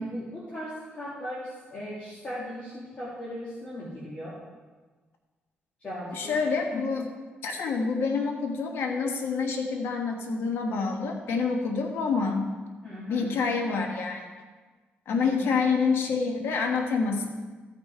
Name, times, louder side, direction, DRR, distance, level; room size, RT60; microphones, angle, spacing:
voice 1, 0.0-4.4 5.8-6.4 6.7-6.9 12.8-13.3 15.2-15.6, left 1 dB, 35° left, -8 dB, 2.2 m, -38 dB
voice 2, 6.1-7.0 7.4-12.5 13.1-14.2 15.1-17.3, left 4 dB, 75° left, 3 dB, 1.4 m, -27 dB
13.5 x 5.4 x 4.6 m, 1.3 s
cardioid pair, 115°, 4 cm